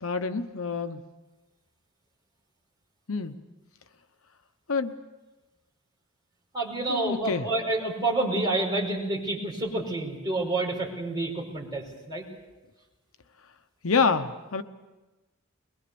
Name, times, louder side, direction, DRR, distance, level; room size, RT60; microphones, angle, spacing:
voice 1, 0.0-1.0 3.1-3.4 4.7-4.9 6.9-7.5 13.8-14.6, left 4 dB, 70° left, 9 dB, 1.0 m, -27 dB
voice 2, 6.5-12.2, right 2 dB, 20° right, -3 dB, 5.4 m, -28 dB
22.5 x 22.5 x 7.0 m, 1.2 s
head